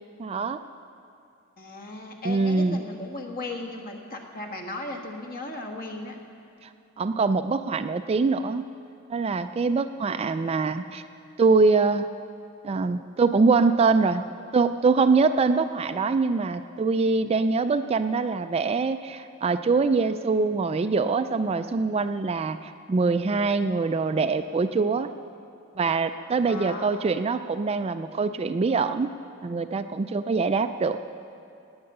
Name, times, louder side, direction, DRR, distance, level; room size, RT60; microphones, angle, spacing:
voice 1, 0.2-0.6 2.3-2.8 6.6-6.7 7.0-8.7 9.1-11.0 11.4-12.1 12.6-14.3 14.5-25.1 25.8-29.1 29.4-31.0, right 4 dB, 25° right, 10 dB, 0.3 m, -24 dB
voice 2, 1.6-6.2 26.5-27.1, left 2 dB, 40° left, 2 dB, 1.5 m, -36 dB
18.5 x 8.8 x 6.6 m, 2.5 s
head